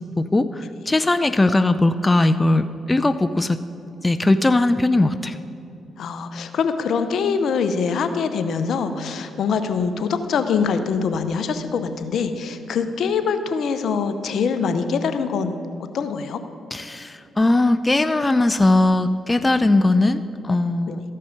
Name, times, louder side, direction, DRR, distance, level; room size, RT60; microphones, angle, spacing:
voice 1, 0.9-3.6 4.0-5.4 16.7-21.0, left 2 dB, 20° left, 11 dB, 0.4 m, -19 dB
voice 2, 6.0-15.6 15.9-16.4 20.9-21.0, left 5 dB, 65° left, 9 dB, 0.7 m, -24 dB
14.0 x 5.5 x 5.2 m, 2.8 s
supercardioid pair, 50°, 0 cm